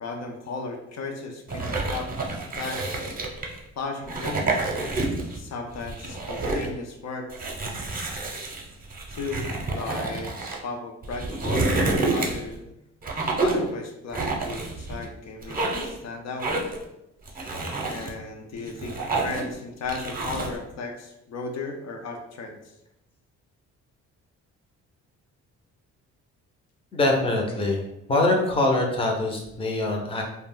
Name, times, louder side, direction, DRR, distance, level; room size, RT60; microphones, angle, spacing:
voice 1, 0.0-2.1 2.6-3.1 3.8-4.7 5.3-7.3 9.1-12.7 13.4-16.5 17.8-22.7, left 4 dB, 60° left, 2 dB, 0.5 m, -35 dB
sound 1, 1.5-3.6 4.0-5.4 5.7-6.7 7.3-10.6 11.0-12.5 13.0-13.7 14.1-15.0 15.4-16.0 16.4-16.8 17.3-18.1 18.6-19.5 19.9-20.6, right 2 dB, 30° right, 0.7 m, -28 dB
voice 2, 26.9-27.8 28.1-30.2, left 2 dB, 20° left, 0 dB, 0.6 m, -23 dB
2.3 x 2.1 x 3.6 m, 0.85 s
cardioid pair, 90°, 30 cm